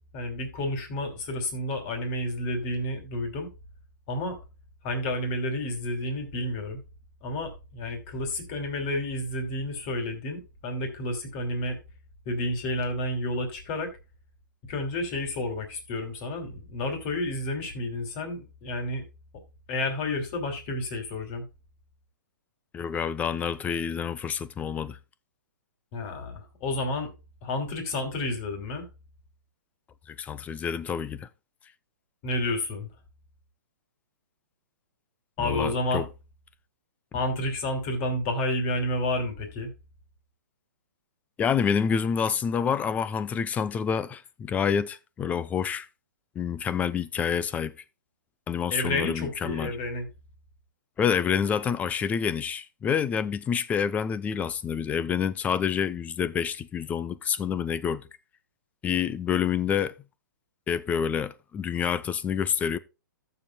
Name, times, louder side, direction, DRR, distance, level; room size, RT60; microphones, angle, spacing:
voice 1, 0.1-3.5 4.1-4.4 4.8-6.8 7.2-11.8 12.3-13.9 14.7-19.0 19.7-21.4 25.9-27.1 27.4-28.9 32.2-32.9 35.4-36.0 37.1-39.7 48.7-50.1, left 1 dB, 40° left, 2.8 m, -30 dB
voice 2, 22.7-25.0 30.1-31.3 35.4-36.1 41.4-45.9 46.3-47.8 48.5-49.8 51.0-58.1 58.8-60.0 60.7-62.8, left 7 dB, 15° left, 0.5 m, -28 dB
15.0 x 7.0 x 2.2 m
hypercardioid pair, 135°, 10 cm